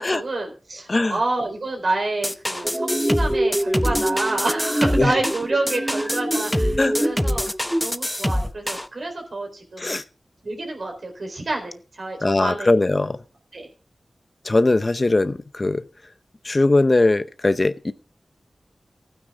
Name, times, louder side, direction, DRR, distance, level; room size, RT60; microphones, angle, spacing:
voice 1, 0.0-7.5 7.8-10.0 10.4-12.7 13.5-13.7, right 2 dB, 65° right, 3 dB, 4.0 m, -28 dB
sound 1, 2.2-8.9, left 1 dB, 10° left, 0.8 m, -25 dB
sound 2, 2.6-7.8, right 1 dB, 20° right, 2.9 m, -25 dB
voice 2, 12.2-13.2 14.4-15.8 16.4-17.9, left 2 dB, 40° left, 13 dB, 0.7 m, -20 dB
15.5 x 9.2 x 3.6 m, 0.36 s
wide cardioid pair, 55°, 0 cm